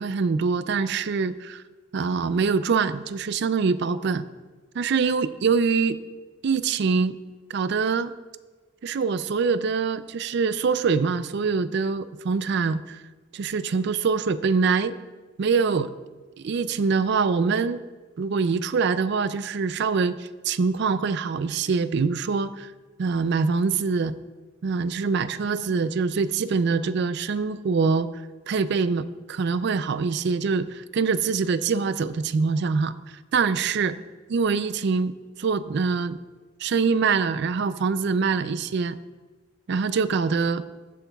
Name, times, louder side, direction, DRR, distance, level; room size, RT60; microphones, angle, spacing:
voice 1, 0.0-1.6 1.9-4.2 4.8-6.0 6.4-7.2 7.5-8.1 8.8-13.0 13.3-15.0 15.4-15.9 16.4-17.8 18.2-22.7 23.0-24.1 24.6-28.1 28.5-32.9 33.3-33.9 34.3-35.1 35.4-36.2 36.6-39.0 39.7-40.6, right 5 dB, 55° right, 14 dB, 0.4 m, -24 dB
14.5 x 8.5 x 2.3 m, 1.3 s
head